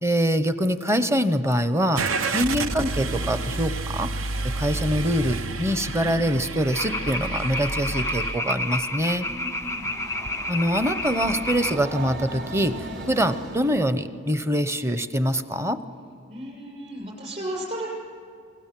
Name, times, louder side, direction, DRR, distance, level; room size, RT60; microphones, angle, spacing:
voice 1, 0.0-2.0 2.3-4.1 4.4-9.3 10.5-15.8, equal, 15° right, 11 dB, 0.8 m, -24 dB
Car / Engine starting, 1.9-8.4, right 3 dB, 75° right, 0.8 m, -30 dB
sound 1, 6.7-11.8, left 1 dB, 15° left, 0.5 m, -30 dB
voice 2, 9.2-9.9 16.3-17.9, right 1 dB, 35° right, -2 dB, 6.5 m, -34 dB
Train, 9.2-13.9, right 1 dB, 55° right, 3.6 m, -38 dB
28.5 x 20.5 x 7.6 m, 2.4 s
head